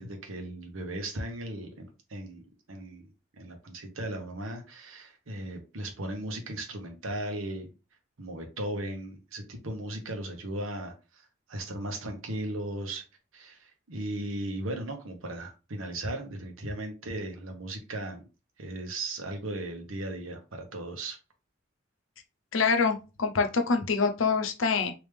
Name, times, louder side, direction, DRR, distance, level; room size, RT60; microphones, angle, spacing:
voice 1, 0.0-2.4 2.7-3.1 3.3-7.7 8.2-11.2 11.5-13.0 13.3-18.2 18.6-21.2, right 1 dB, 90° right, 4 dB, 1.1 m, -37 dB
voice 2, 22.5-24.9, left 4 dB, 75° left, 6 dB, 0.7 m, -25 dB
3.4 x 2.9 x 3.3 m, 0.30 s
head